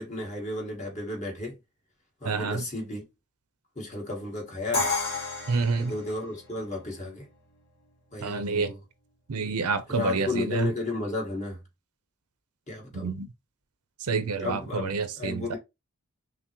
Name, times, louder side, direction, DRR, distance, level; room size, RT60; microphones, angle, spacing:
voice 1, 0.0-1.5 2.2-3.0 3.7-4.9 5.8-7.2 8.1-8.8 9.9-11.6 12.7-13.1 14.4-14.8 15.2-15.6, left 2 dB, 30° left, 1.5 m, -33 dB
voice 2, 2.2-2.6 5.5-5.9 8.2-8.8 9.3-10.7 12.9-13.3 14.0-15.6, right 4 dB, 85° right, 0.6 m, -28 dB
Crash cymbal, 4.7-6.7, left 3 dB, 50° left, 1.0 m, -31 dB
5.7 x 2.0 x 2.9 m
head